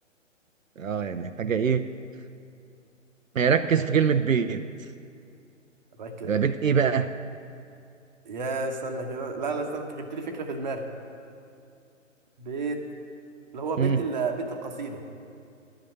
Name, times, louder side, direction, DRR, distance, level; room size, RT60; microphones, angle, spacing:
voice 1, 0.8-1.9 3.4-4.7 6.2-7.1 13.8-14.0, right 7 dB, 85° right, 10 dB, 0.5 m, -23 dB
voice 2, 6.0-6.3 8.3-10.8 12.4-12.8 13.5-15.0, right 3 dB, 35° right, 5 dB, 0.9 m, -31 dB
11.0 x 5.7 x 8.9 m, 2.5 s
figure-of-eight pair, 130°, 38 cm